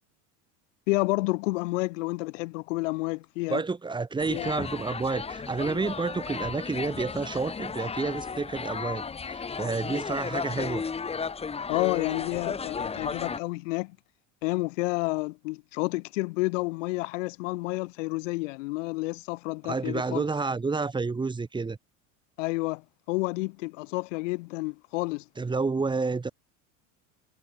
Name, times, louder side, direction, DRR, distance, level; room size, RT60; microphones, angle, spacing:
voice 1, 0.9-3.6 4.3-4.5 11.7-14.0 14.4-20.2 22.4-25.2, left 23 dB, 85° left, 7.5 m, -30 dB
voice 2, 3.5-10.8 19.7-21.8 25.4-26.3, right 4 dB, 10° right, 3.8 m, -30 dB
sound 1, 4.2-13.4, left 5 dB, 15° left, 3.8 m, -34 dB
cardioid pair, 150°, 36 cm